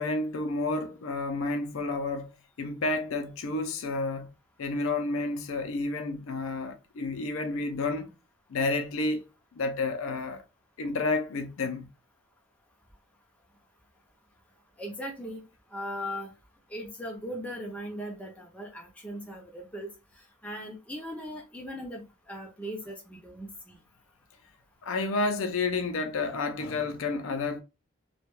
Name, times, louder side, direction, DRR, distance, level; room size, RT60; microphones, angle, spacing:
voice 1, 0.0-2.3 2.6-4.3 4.6-8.1 8.5-9.2 9.6-10.4 10.8-11.9 24.8-27.6, left 3 dB, 70° left, 0.4 m, -30 dB
voice 2, 14.8-15.4 15.7-16.3 16.7-19.9 20.4-23.8, equal, 5° left, 0.5 m, -38 dB
2.2 x 2.1 x 3.0 m
head